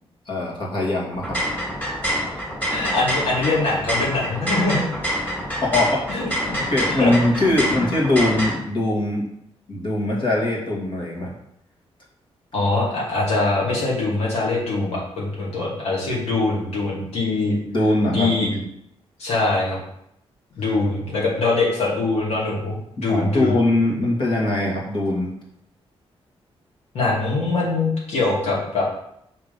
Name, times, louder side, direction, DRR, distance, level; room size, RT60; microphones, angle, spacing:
voice 1, 0.3-1.4 5.6-6.0 6.7-9.2 9.7-11.3 17.7-18.6 23.0-25.3, left 1 dB, 50° left, -2 dB, 2.0 m, -22 dB
sound 1, 1.1-8.5, equal, 15° left, 2.3 m, -26 dB
voice 2, 2.7-4.8 6.1-6.6 6.9-7.1 7.7-7.9 12.5-17.6 18.1-18.5 19.2-19.8 20.6-23.6 26.9-28.8, left 3 dB, 85° left, -5 dB, 2.4 m, -23 dB
5.8 x 3.5 x 5.4 m, 0.76 s
cardioid pair, 105°, 11 cm